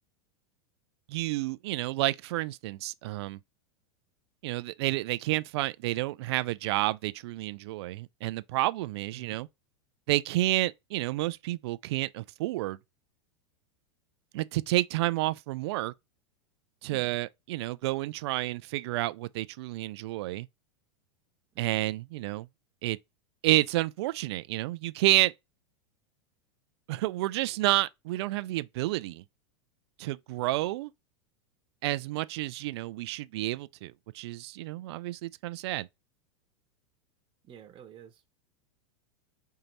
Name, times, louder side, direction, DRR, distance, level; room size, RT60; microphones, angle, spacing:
voice 1, 1.1-3.4 4.4-9.5 10.1-12.8 14.3-15.9 16.8-20.5 21.6-22.5 22.8-23.0 23.4-25.3 26.9-29.2 30.0-30.9 31.8-35.9, right 17 dB, 60° right, 0.4 m, -30 dB
voice 2, 37.4-38.2, right 9 dB, 35° right, 1.0 m, -50 dB
4.5 x 2.8 x 4.0 m
hypercardioid pair, 95°, 15 cm